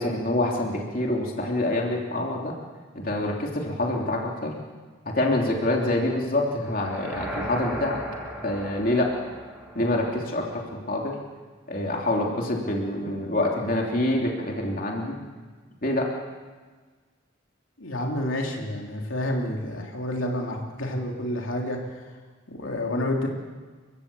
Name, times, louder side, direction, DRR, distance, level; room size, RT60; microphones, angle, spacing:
voice 1, 0.0-2.5 2.9-4.5 5.0-8.0 8.4-9.1 9.7-11.2 11.7-15.2 15.8-16.1, left 1 dB, 45° left, 0 dB, 3.2 m, -26 dB
sound 1, 6.6-10.7, equal, 10° right, 5.7 m, -37 dB
voice 2, 17.8-22.1 22.5-23.3, left 1 dB, 80° left, 0 dB, 3.3 m, -29 dB
29.5 x 16.5 x 7.0 m, 1.4 s
head